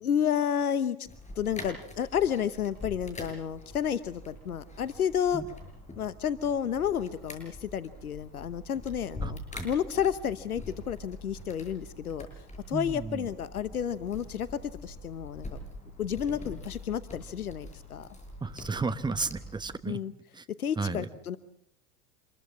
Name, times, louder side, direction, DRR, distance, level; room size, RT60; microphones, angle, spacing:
voice 1, 0.0-1.1 1.4-5.4 6.0-12.3 12.7-15.6 16.0-18.1 19.9-20.1 20.6-21.4, left 8 dB, 85° left, 15 dB, 1.1 m, -31 dB
sound 1, 1.0-19.8, left 1 dB, 15° left, 7.1 m, -45 dB
voice 2, 9.2-9.7 12.7-13.3 18.4-20.0 20.3-20.4 20.8-21.1, right 4 dB, 10° right, 13 dB, 1.2 m, -33 dB
27.0 x 22.0 x 7.3 m, 0.71 s
hypercardioid pair, 90°, 43 cm